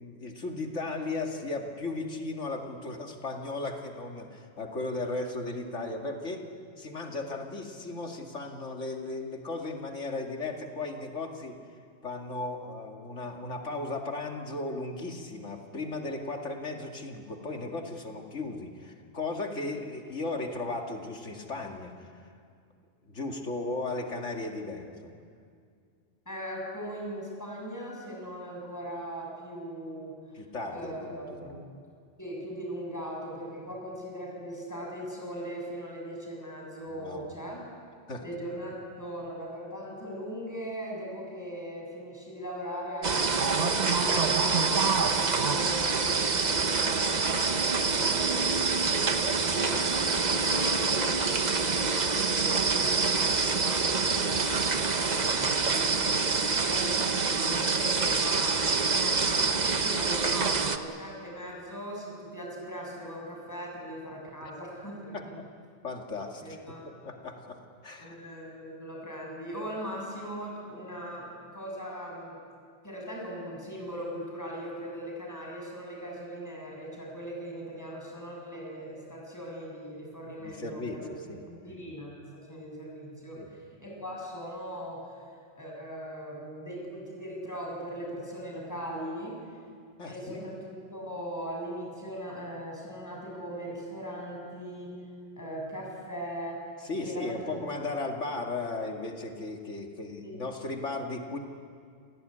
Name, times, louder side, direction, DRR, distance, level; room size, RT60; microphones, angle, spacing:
voice 1, 0.0-6.5 6.8-11.6 12.0-22.3 23.0-24.9 30.3-31.5 36.9-37.3 38.1-38.2 47.7-48.1 64.4-64.5 65.1-65.5 65.8-66.4 66.7-68.2 80.4-81.0 81.3-81.4 83.4-83.5 90.0-90.5 96.8-101.4, left 2 dB, 85° left, 2 dB, 2.6 m, -36 dB
voice 2, 26.3-30.1 30.7-31.6 32.2-37.6 38.2-48.5 48.7-65.1 66.4-66.8 68.0-71.2 71.5-72.4 72.8-81.1 81.5-85.2 85.5-89.4 90.0-95.0 95.4-96.6 97.0-97.6 100.2-100.4, equal, 15° left, -2 dB, 7.3 m, -39 dB
sound 1, 43.0-60.8, right 4 dB, 40° right, 1.1 m, -26 dB
27.5 x 17.5 x 10.0 m, 2.2 s
omnidirectional pair, 1.2 m